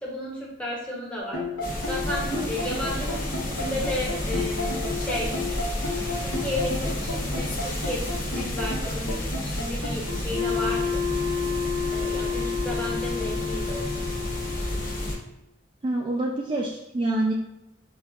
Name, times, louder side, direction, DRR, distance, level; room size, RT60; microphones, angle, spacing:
voice 1, 0.0-1.5 1.9-5.3 6.2-11.0 11.9-13.9, left 1 dB, 5° left, -4 dB, 0.8 m, -33 dB
sound 1, 1.2-15.2, left 4 dB, 75° left, 0.9 m, -31 dB
sound 2, 1.6-15.2, left 1 dB, 45° left, 0.8 m, -31 dB
voice 2, 15.8-17.3, right 2 dB, 25° right, -2 dB, 0.3 m, -26 dB
5.1 x 2.3 x 2.3 m, 0.91 s
head